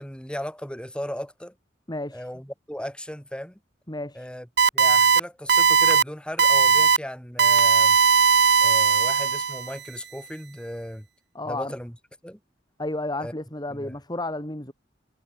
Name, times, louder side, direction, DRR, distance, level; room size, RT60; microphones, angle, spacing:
voice 1, 0.0-1.5 2.1-3.6 4.1-4.5 4.7-8.0 8.6-11.1 11.5-11.9 12.2-12.4 13.2-13.3 13.7-13.9, equal, 5° left, 5.1 m, -36 dB
voice 2, 1.9-2.3 3.9-4.3 11.3-11.7 12.8-14.7, left 2 dB, 25° left, 4.2 m, -32 dB
sound 1, 4.6-5.2 5.5-6.0 6.4-7.0 7.4-9.7, right 6 dB, 65° right, 1.8 m, -18 dB
head